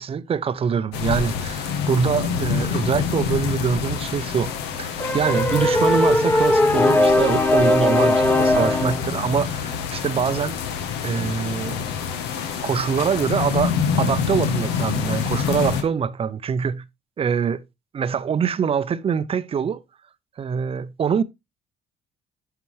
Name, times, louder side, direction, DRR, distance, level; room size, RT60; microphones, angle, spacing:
voice 1, 0.0-4.5 4.8-10.5 11.0-11.8 12.6-16.8 17.2-17.6 17.9-19.8 20.4-21.2, right 7 dB, 35° right, 0.5 m, -24 dB
sound 1, 0.9-15.8, left 7 dB, 90° left, 1.1 m, -27 dB
sound 2, 5.0-9.0, left 1 dB, 10° left, 0.9 m, -19 dB
9.3 x 5.7 x 3.2 m
cardioid pair, 110°, 17 cm